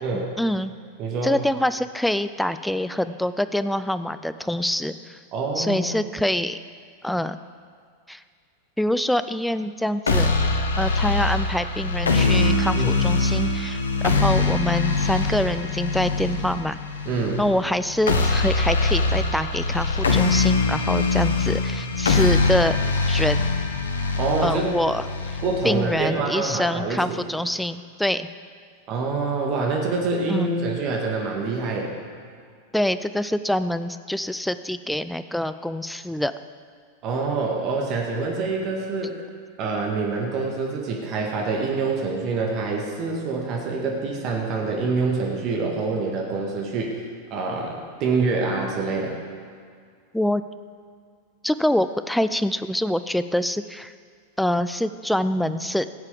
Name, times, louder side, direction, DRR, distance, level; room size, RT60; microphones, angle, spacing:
voice 1, 0.1-0.7 1.2-5.2 5.6-6.6 7.0-7.4 8.1-8.2 8.8-10.3 10.8-16.8 17.4-22.8 23.1-23.4 24.4-28.3 30.3-30.5 32.7-36.3 50.1-50.4 51.4-53.9 54.4-55.9, left 1 dB, 5° left, 12 dB, 0.5 m, -25 dB
voice 2, 1.0-1.4 5.3-6.1 12.8-13.1 17.1-17.5 24.2-24.7 25.4-27.2 28.9-31.9 37.0-39.3 39.6-49.2, right 3 dB, 40° right, 0 dB, 1.9 m, -26 dB
sound 1, 10.1-26.1, left 3 dB, 70° left, 1.1 m, -23 dB
15.5 x 8.2 x 5.2 m, 2.1 s
figure-of-eight pair, 90°, 0 cm